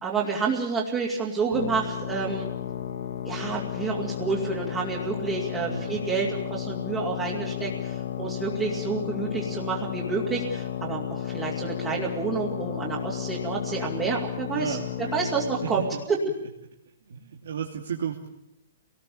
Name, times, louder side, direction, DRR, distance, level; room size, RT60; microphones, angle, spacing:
voice 1, 0.0-2.5 3.2-14.8 15.1-16.2, right 5 dB, 15° right, -4 dB, 2.6 m, -29 dB
sound 1, 1.5-16.0, left 10 dB, 55° left, 1.8 m, -33 dB
voice 2, 5.6-6.4 14.5-15.3 15.6-16.0 17.1-18.3, right 7 dB, 75° right, 1 dB, 2.6 m, -34 dB
26.5 x 19.5 x 7.1 m, 0.84 s
hypercardioid pair, 170°, 0 cm